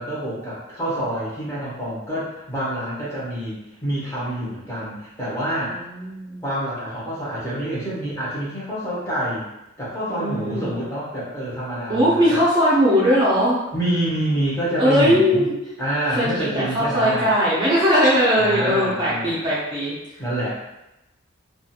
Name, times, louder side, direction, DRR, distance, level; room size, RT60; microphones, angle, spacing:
voice 1, 0.0-5.7 6.4-9.5 9.8-12.4 13.7-15.5 15.8-17.3 18.4-19.5 20.2-20.5, right 1 dB, 15° left, -8 dB, 0.8 m, -27 dB
voice 2, 5.7-6.4 10.1-10.8 11.9-13.6 14.8-15.5 16.1-19.9, equal, 25° right, -9 dB, 0.5 m, -19 dB
2.4 x 2.4 x 2.7 m, 0.91 s
head